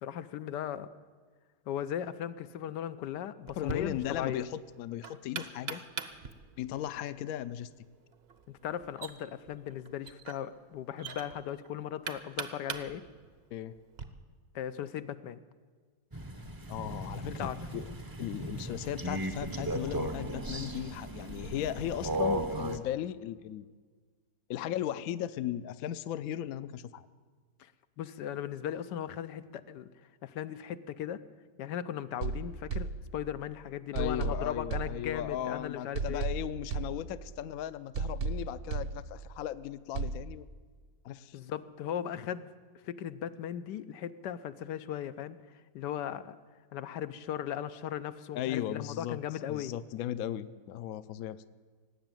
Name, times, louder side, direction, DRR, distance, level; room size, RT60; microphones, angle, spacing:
voice 1, 0.0-0.9 1.7-4.4 8.6-13.0 14.5-15.4 17.4-17.6 27.6-27.7 28.0-29.9 30.2-31.2 31.6-36.3 41.3-42.5 42.8-46.3 46.7-49.7, left 10 dB, 85° left, 12 dB, 1.3 m, -37 dB
Knock, 3.5-14.1, right 6 dB, 45° right, 0.9 m, -44 dB
voice 2, 3.6-5.8 6.6-7.7 13.5-13.7 16.7-17.9 18.2-23.6 24.5-27.1 33.9-40.5 41.0-41.4 48.3-49.2 49.5-51.5, left 11 dB, 65° left, 14 dB, 0.9 m, -37 dB
Crow, 16.1-22.8, right 1 dB, 20° right, 0.5 m, -36 dB
sound 1, 32.2-33.5 34.0-35.5 36.0-37.5 38.0-39.5 40.0-40.2, right 4 dB, 65° right, 1.2 m, -36 dB
19.0 x 8.0 x 9.1 m, 1.5 s
omnidirectional pair, 1.8 m